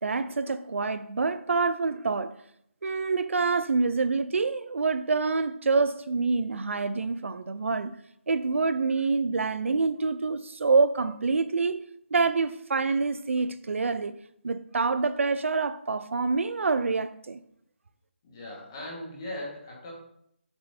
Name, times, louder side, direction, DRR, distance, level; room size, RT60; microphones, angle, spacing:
voice 1, 0.0-2.3 2.8-7.9 8.3-11.8 12.1-14.1 14.4-17.4, right 4 dB, 80° right, 0.4 m, -26 dB
voice 2, 18.2-19.9, left 1 dB, 20° left, 1.5 m, -39 dB
7.0 x 5.4 x 2.7 m
hypercardioid pair, 180°, 7 cm